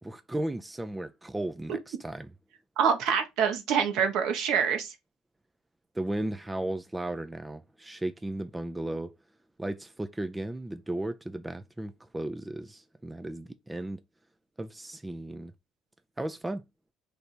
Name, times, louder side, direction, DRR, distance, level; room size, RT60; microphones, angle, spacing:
voice 1, 0.0-2.3 6.0-9.1 9.6-14.0 14.6-15.5 16.2-16.6, right 1 dB, 10° right, 0.4 m, -35 dB
voice 2, 2.8-4.9, right 7 dB, 75° right, 1.0 m, -26 dB
3.3 x 2.6 x 4.2 m
cardioid pair, 105°, 0 cm